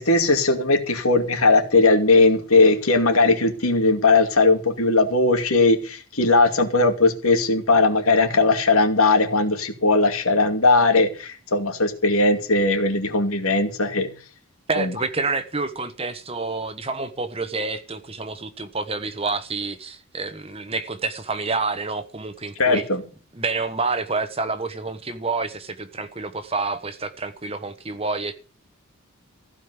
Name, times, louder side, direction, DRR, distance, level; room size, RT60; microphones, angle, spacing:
voice 1, 0.0-14.1 14.8-14.9 22.6-23.0, left 3 dB, 75° left, 2.6 m, -19 dB
voice 2, 14.7-22.8 23.3-28.3, right 3 dB, 25° right, 1.1 m, -28 dB
15.5 x 5.4 x 9.6 m
head